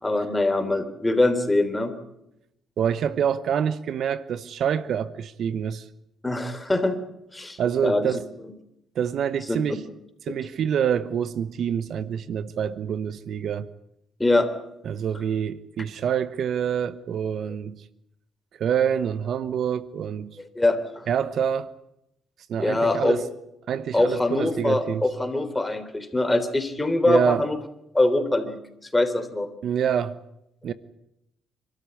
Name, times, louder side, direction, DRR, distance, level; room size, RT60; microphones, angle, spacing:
voice 1, 0.0-1.9 6.2-7.0 7.3-7.6 7.8-8.1 14.2-14.5 20.4-21.1 22.6-23.2 23.9-27.6 27.9-28.6 28.9-29.5, left 2 dB, 15° left, 3.4 m, -23 dB
voice 2, 2.8-5.8 7.6-8.2 8.9-9.8 10.3-13.7 14.8-17.8 18.6-20.4 21.1-21.7 22.5-23.2 23.7-25.0 27.0-27.5 29.6-30.2 30.6-30.7, right 8 dB, 65° right, 1.0 m, -26 dB
27.0 x 13.5 x 9.9 m
cardioid pair, 90°, 0 cm